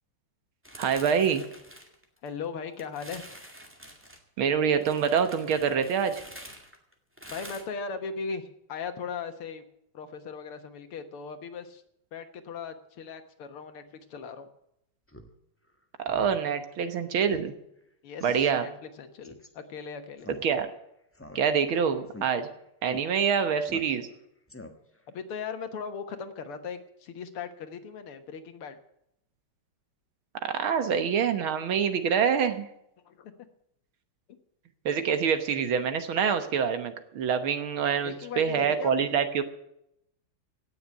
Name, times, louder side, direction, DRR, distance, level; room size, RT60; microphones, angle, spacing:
sound 1, 0.6-2.4 2.8-4.2 4.8-7.6, equal, 5° right, 1.9 m, -47 dB
voice 1, 0.8-1.4 4.4-6.2 16.0-17.5 18.2-18.7 20.4-20.7 21.4-22.5 22.8-24.1 30.4-32.7 34.9-39.4, right 7 dB, 70° right, 9 dB, 2.0 m, -26 dB
voice 2, 2.2-3.2 7.3-9.6 9.9-11.8 12.1-13.8 14.1-14.5 18.0-18.7 19.0-20.3 25.1-28.8 33.1-33.3 34.3-34.4 38.0-39.1, left 5 dB, 80° left, 8 dB, 2.2 m, -38 dB
Speech synthesizer, 15.1-15.3 15.7-15.8 16.1-16.4 16.7-16.8 17.3-17.5 17.8-17.9 18.2-18.5 19.2-19.5 20.2-20.8 21.1-21.7 22.1-22.3 22.9-23.0 23.7-24.2 24.5-25.0, left 1 dB, 10° left, 0.7 m, -46 dB
17.5 x 6.8 x 9.5 m, 0.78 s
omnidirectional pair, 2.4 m